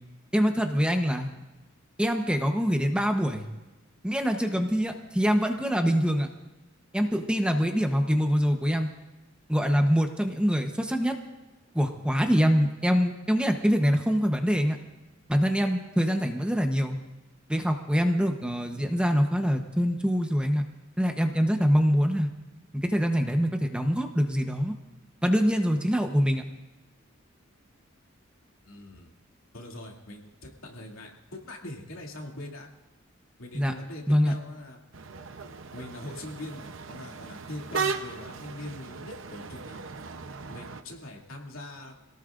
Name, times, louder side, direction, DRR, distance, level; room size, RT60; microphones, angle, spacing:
voice 1, 0.3-1.3 2.0-3.5 4.0-6.3 6.9-8.9 9.5-11.2 11.7-14.8 15.3-17.0 17.5-20.6 21.0-22.3 22.8-24.7 25.2-26.4 33.5-33.7 34.1-34.3, equal, 5° right, 4 dB, 1.0 m, -24 dB
voice 2, 28.6-29.1 29.5-32.7 33.4-34.8 35.7-39.8 40.5-41.9, left 1 dB, 85° left, -1 dB, 2.7 m, -42 dB
sound 1, 34.9-40.8, right 5 dB, 65° right, 0.8 m, -37 dB
26.0 x 17.5 x 2.6 m, 1.1 s
head